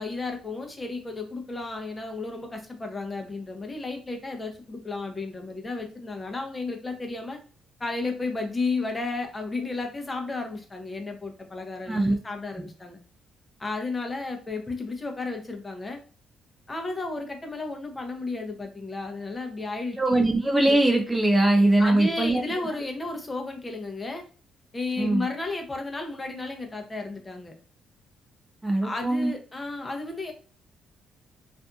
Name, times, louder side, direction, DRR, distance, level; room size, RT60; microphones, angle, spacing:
voice 1, 0.0-7.4 7.8-13.0 13.6-16.0 16.7-20.2 21.8-24.2 24.7-27.5 28.8-30.3, left 3 dB, 20° left, 3 dB, 0.7 m, -33 dB
voice 2, 20.0-22.4 25.0-25.3 28.6-29.3, right 2 dB, 15° right, 3 dB, 0.4 m, -21 dB
2.6 x 2.5 x 2.3 m, 0.38 s
cardioid pair, 90°, 0 cm